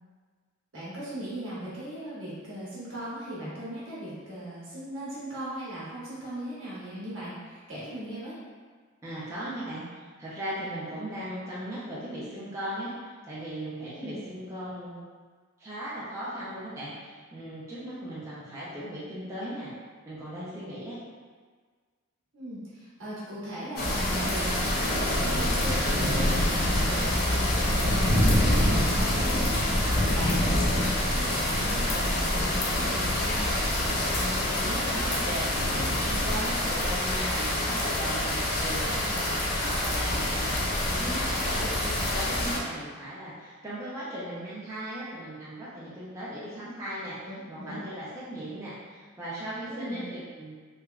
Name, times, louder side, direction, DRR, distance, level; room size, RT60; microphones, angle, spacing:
voice 1, 0.7-8.3 13.9-14.2 22.3-33.4 41.4-41.7 47.2-47.9 49.6-50.1, right 1 dB, 65° right, -9 dB, 1.1 m, -38 dB
voice 2, 9.0-15.0 15.6-19.7 20.1-21.0 34.2-50.7, right 1 dB, 15° right, -10 dB, 0.4 m, -38 dB
sound 1, 23.8-42.6, left 1 dB, 45° left, 0.4 m, -26 dB
3.2 x 2.2 x 2.3 m, 1.5 s
head